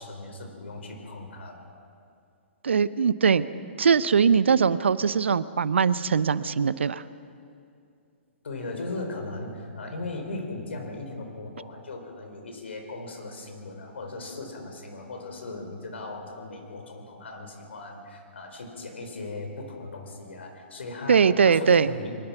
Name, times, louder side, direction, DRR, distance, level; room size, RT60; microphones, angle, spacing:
voice 1, 0.0-1.7 8.4-22.1, left 2 dB, 70° left, 4 dB, 4.6 m, -38 dB
voice 2, 2.6-3.5 3.8-7.0 21.1-21.9, right 6 dB, 70° right, 16 dB, 0.7 m, -21 dB
23.5 x 21.5 x 6.0 m, 2.4 s
figure-of-eight pair, 120°, 7 cm